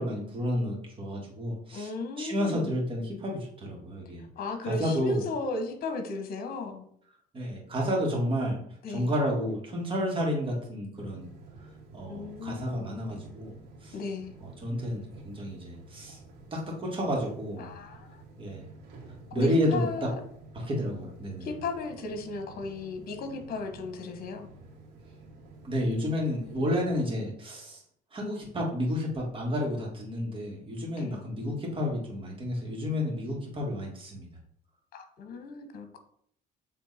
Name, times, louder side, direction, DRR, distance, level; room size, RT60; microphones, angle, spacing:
voice 1, 0.0-1.9 2.2-4.3 4.6-5.2 7.3-8.6 8.9-11.3 11.9-14.0 14.4-16.2 16.5-17.7 18.4-18.7 19.3-19.8 20.7-21.5 25.6-27.8 28.1-34.3, equal, 30° right, -2 dB, 2.2 m, -31 dB
voice 2, 1.7-2.7 4.3-6.8 8.8-9.1 12.0-12.9 13.9-14.3 17.6-18.2 19.3-20.1 21.4-24.5 31.0-31.2 34.9-36.0, left 3 dB, 60° left, 7 dB, 1.2 m, -35 dB
sound 1, 10.9-27.1, right 2 dB, 90° right, 1.8 m, -50 dB
7.4 x 3.4 x 4.3 m, 0.64 s
cardioid pair, 110°, 17 cm